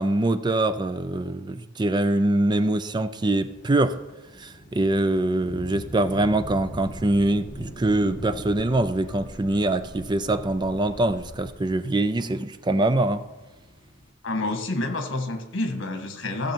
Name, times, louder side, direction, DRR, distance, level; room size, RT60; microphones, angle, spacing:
voice 1, 0.0-4.0 4.4-13.2, right 2 dB, 25° right, 0.4 m, -24 dB
sound 1, 3.4-14.1, left 1 dB, 40° left, 2.0 m, -43 dB
Boat Water vehicle, 6.3-11.5, left 1 dB, 10° left, 4.2 m, -44 dB
voice 2, 14.2-16.5, left 2 dB, 75° left, 1.6 m, -28 dB
15.5 x 6.9 x 4.5 m
head